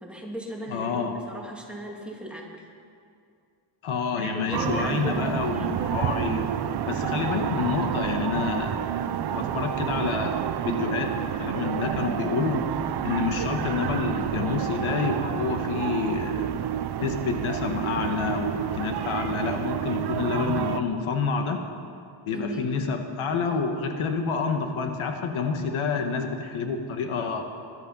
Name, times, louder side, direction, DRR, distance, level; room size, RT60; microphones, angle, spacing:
voice 1, 0.0-2.5 4.2-5.8 22.3-22.7, right 1 dB, ahead, -2 dB, 2.2 m, -37 dB
voice 2, 0.7-1.2 3.8-6.5 6.8-12.6 13.0-16.5 17.0-21.6 22.3-27.4, left 5 dB, 70° left, 5 dB, 1.6 m, -28 dB
sound 1, 4.5-20.8, right 10 dB, 50° right, 0.7 m, -29 dB
20.5 x 12.0 x 5.5 m, 2.4 s
wide cardioid pair, 155°, 50 cm